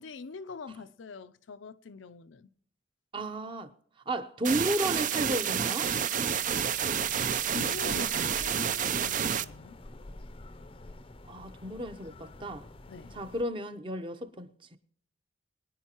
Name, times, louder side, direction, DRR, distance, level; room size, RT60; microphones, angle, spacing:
voice 1, 0.0-2.5 7.5-9.8 12.9-13.2, left 4 dB, 75° left, 0.5 m, -44 dB
voice 2, 3.1-3.7 4.1-5.9 11.3-12.6 13.1-14.8, right 1 dB, 25° right, 0.8 m, -33 dB
sound 1, 4.4-9.4, right 8 dB, 40° right, 0.4 m, -29 dB
sound 2, 6.4-13.4, left 2 dB, 30° left, 0.6 m, -48 dB
23.0 x 9.8 x 2.9 m
head